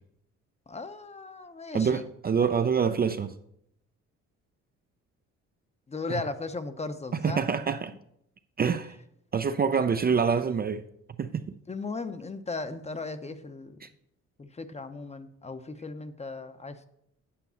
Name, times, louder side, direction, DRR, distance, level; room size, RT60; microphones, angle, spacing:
voice 1, 0.7-2.0 5.9-7.4 11.7-13.8 14.4-16.8, left 3 dB, 20° left, 0.7 m, -37 dB
voice 2, 1.7-3.3 6.1-6.2 7.2-7.9 8.6-8.9 9.3-10.8 11.2-11.4 13.8-13.9, right 6 dB, 30° right, 0.5 m, -26 dB
8.5 x 5.3 x 6.9 m
cardioid pair, 90°, 30 cm